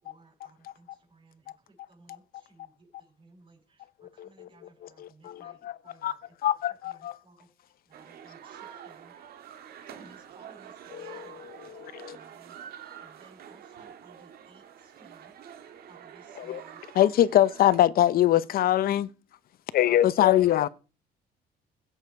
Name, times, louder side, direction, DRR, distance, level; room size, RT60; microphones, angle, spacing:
voice 1, 0.0-6.3 6.8-7.5 7.9-9.1 10.0-11.8 12.1-12.5 13.0-15.4 15.9-16.8 17.1-17.2 20.2-20.3, right 3 dB, 35° right, 7.1 m, -59 dB
voice 2, 4.2-4.5 5.0-5.8 6.0-6.1 6.4-7.2 10.9-11.3 11.6-12.2 16.4-16.6 16.9-19.1 19.7-20.7, left 12 dB, 60° left, 0.8 m, -23 dB
sound 1, 7.9-17.8, right 9 dB, 65° right, 1.9 m, -47 dB
voice 3, 19.8-20.7, left 3 dB, 20° left, 2.3 m, -49 dB
16.0 x 7.2 x 4.8 m
cardioid pair, 110°, 17 cm